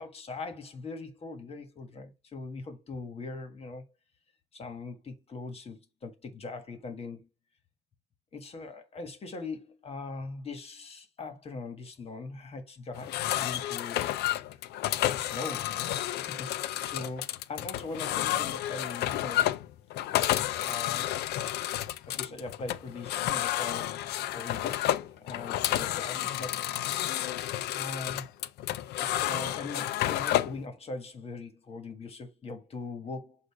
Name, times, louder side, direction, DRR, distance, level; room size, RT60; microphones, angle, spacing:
voice 1, 0.0-3.8 4.5-7.3 8.3-14.1 15.1-16.5 16.8-19.5 20.5-21.1 22.1-26.5 27.7-28.3 29.0-33.4, left 3 dB, 35° left, 1.6 m, -41 dB
sound 1, 12.9-30.6, left 13 dB, 75° left, 0.6 m, -31 dB
7.9 x 2.7 x 4.8 m
cardioid pair, 110°, 17 cm